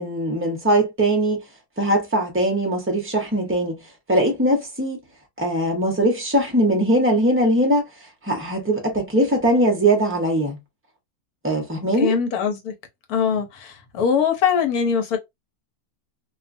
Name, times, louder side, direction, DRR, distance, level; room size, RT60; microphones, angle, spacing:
voice 1, 0.0-1.4 1.8-3.8 4.1-5.0 5.4-7.8 8.2-10.6 11.4-12.2, right 1 dB, 15° right, 0.5 m, -20 dB
voice 2, 12.0-12.7 13.1-15.2, left 7 dB, 80° left, 1.3 m, -22 dB
2.6 x 2.3 x 2.5 m
omnidirectional pair, 1.6 m